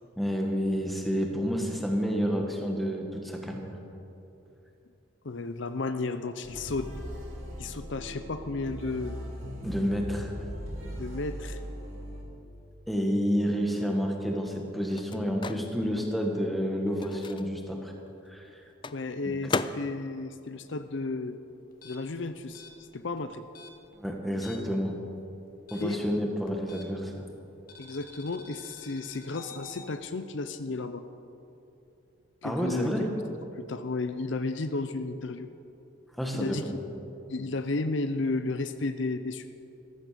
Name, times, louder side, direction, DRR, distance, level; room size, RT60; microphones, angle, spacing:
voice 1, 0.2-3.7 9.6-10.3 12.9-17.9 18.3-18.6 19.2-19.3 24.0-25.0 25.7-27.2 32.4-33.1 36.2-36.7, equal, ahead, 1 dB, 1.7 m, -29 dB
voice 2, 5.2-6.9 7.6-9.2 10.9-11.6 18.9-21.4 21.8-23.5 25.8-26.0 27.8-31.0 32.4-33.1 33.6-35.5 36.3-36.7 37.3-39.5, left 3 dB, 60° left, 10 dB, 0.6 m, -33 dB
sound 1, 6.4-12.2, equal, 80° right, 4.9 m, -39 dB
Microwave oven, 13.6-21.7 22.0-23.9, left 4 dB, 25° left, 0.3 m, -39 dB
sound 2, 21.7-24.8 25.1-27.1 27.7-29.9, left 3 dB, 45° left, 1.5 m, -50 dB
14.5 x 14.0 x 6.8 m, 2.9 s
head